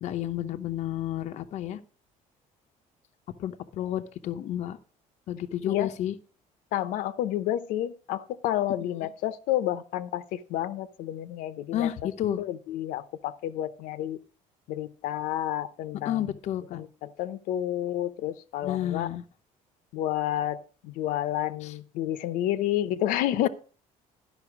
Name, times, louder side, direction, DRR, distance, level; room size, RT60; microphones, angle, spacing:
voice 1, 0.0-1.8 3.4-4.8 5.3-6.2 11.7-12.4 16.0-16.8 18.6-19.2 21.6-21.7, left 11 dB, 55° left, 7 dB, 0.7 m, -31 dB
voice 2, 6.7-12.1 12.4-14.2 14.7-16.3 16.7-19.1 19.9-23.5, left 12 dB, 85° left, 12 dB, 0.8 m, -30 dB
12.0 x 5.6 x 5.9 m, 0.40 s
cardioid pair, 150°, 14 cm